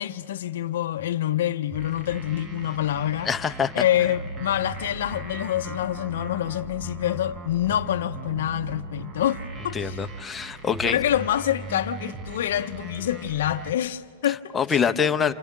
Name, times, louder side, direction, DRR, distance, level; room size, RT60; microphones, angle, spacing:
voice 1, 0.0-3.3 3.7-10.0 10.9-14.8, left 11 dB, 75° left, 0.5 m, -26 dB
sound 1, 1.7-13.7, right 2 dB, 25° right, 0.8 m, -38 dB
voice 2, 3.2-3.7 9.7-11.0 14.3-15.3, left 7 dB, 15° left, 0.6 m, -25 dB
28.0 x 26.5 x 3.7 m
supercardioid pair, 145°, 0 cm